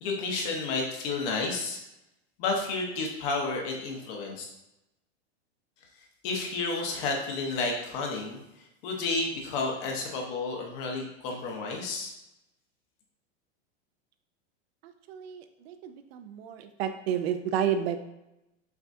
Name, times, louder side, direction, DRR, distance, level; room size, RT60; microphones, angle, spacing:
voice 1, 0.0-1.8 2.4-4.4 6.2-8.4 8.8-12.1, left 3 dB, 50° left, 1 dB, 1.0 m, -31 dB
voice 2, 14.8-18.0, right 9 dB, 65° right, 9 dB, 0.5 m, -31 dB
5.9 x 2.3 x 2.6 m, 0.90 s
supercardioid pair, 145°, 33 cm